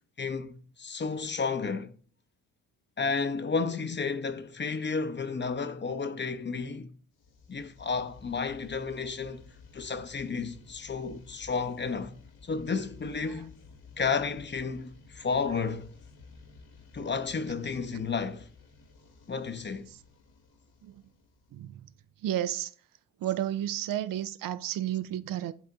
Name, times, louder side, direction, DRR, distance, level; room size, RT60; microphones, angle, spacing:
voice 1, 0.2-1.9 3.0-6.9 7.5-9.4 9.7-12.2 12.4-13.5 14.0-15.9 16.9-18.5 19.3-19.9, left 5 dB, 30° left, 0.8 m, -32 dB
Street sweeper granular pad + noise, 7.2-22.0, left 4 dB, 80° left, 1.6 m, -54 dB
voice 2, 21.5-21.9 22.2-22.7 23.2-25.5, right 12 dB, 60° right, 0.6 m, -32 dB
10.5 x 3.6 x 3.5 m
supercardioid pair, 55°, 37 cm